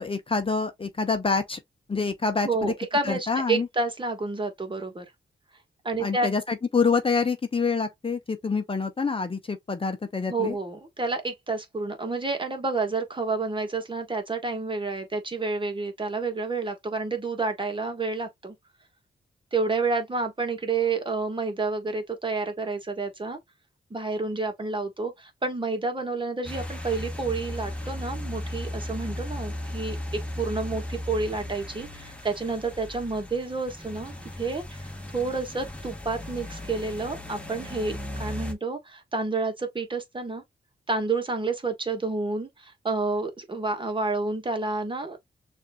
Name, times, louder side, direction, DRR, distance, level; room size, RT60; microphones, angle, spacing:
voice 1, 0.0-1.6 1.9-2.7 3.0-3.7 6.0-10.5, left 4 dB, 30° left, 0.8 m, -26 dB
voice 2, 2.4-5.0 5.8-6.3 10.3-18.5 19.5-23.4 23.9-40.4 40.9-45.2, right 3 dB, 30° right, 1.4 m, -29 dB
sound 1, 26.4-38.5, left 1 dB, 5° left, 1.3 m, -36 dB
6.4 x 2.7 x 2.2 m
cardioid pair, 70°, 18 cm